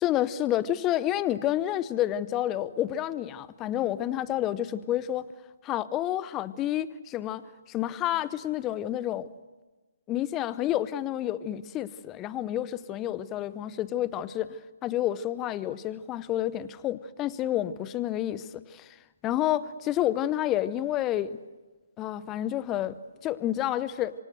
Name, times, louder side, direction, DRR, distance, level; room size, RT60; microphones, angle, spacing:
voice 1, 0.0-5.3 5.6-7.4 7.7-9.3 10.1-18.9 19.2-21.4 22.0-24.1, left 12 dB, 20° left, 17 dB, 0.8 m, -29 dB
27.0 x 25.0 x 7.9 m, 1.2 s
figure-of-eight pair, 135°, 0 cm